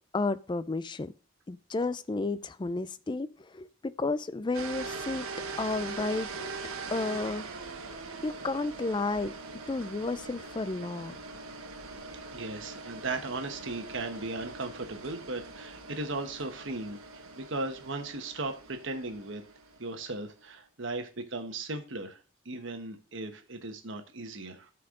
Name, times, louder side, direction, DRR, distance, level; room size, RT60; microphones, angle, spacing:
voice 1, 0.1-1.1 1.5-5.3 5.6-6.5 6.9-7.5 7.9-9.3 9.7-11.2, left 3 dB, 20° left, 0.3 m, -32 dB
sound 1, 4.5-20.2, right 4 dB, 85° right, 1.1 m, -42 dB
voice 2, 12.3-19.4 19.8-24.7, right 2 dB, 60° right, 1.1 m, -37 dB
13.0 x 4.6 x 3.7 m
head